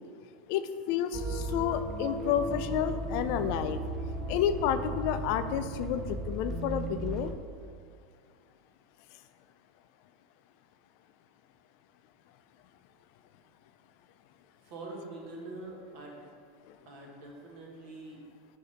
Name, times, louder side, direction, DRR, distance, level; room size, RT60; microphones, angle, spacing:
voice 1, 0.5-3.8 4.3-7.3, left 9 dB, 60° left, 10 dB, 0.4 m, -30 dB
sound 1, 1.1-7.3, right 2 dB, 30° right, 0.5 m, -36 dB
voice 2, 14.6-16.2 16.8-18.2, right 2 dB, 60° right, -1 dB, 1.4 m, -44 dB
7.0 x 2.7 x 5.7 m, 2.1 s
hypercardioid pair, 90°, 0 cm